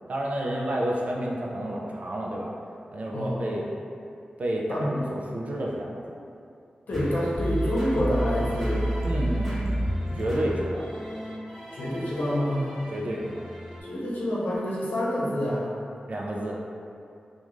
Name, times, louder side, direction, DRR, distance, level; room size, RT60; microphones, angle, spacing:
voice 1, 0.1-2.5 2.9-3.7 4.4-6.0 9.0-9.8 10.2-10.9 12.9-13.4 16.1-16.6, right 1 dB, 55° right, -2 dB, 0.3 m, -30 dB
voice 2, 3.1-3.4 4.7-4.9 6.9-8.9 11.7-12.8 13.8-15.7, equal, 85° left, -7 dB, 0.7 m, -27 dB
sound 1, 6.9-13.8, equal, 5° right, 0.6 m, -31 dB
2.4 x 2.2 x 3.0 m, 2.5 s
wide cardioid pair, 130°, 3 cm